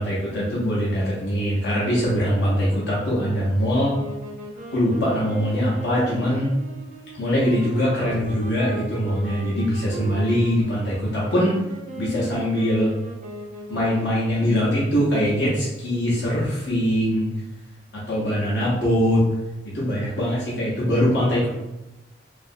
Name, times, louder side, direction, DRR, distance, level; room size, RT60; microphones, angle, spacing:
voice 1, 0.0-4.0 4.7-6.5 7.1-11.5 11.9-12.9 13.7-17.3 17.9-19.2 19.6-21.5, equal, 65° left, -7 dB, 0.6 m, -22 dB
sound 1, 3.9-14.2, right 2 dB, 40° right, 0.4 m, -38 dB
2.6 x 2.4 x 2.5 m, 1.0 s
head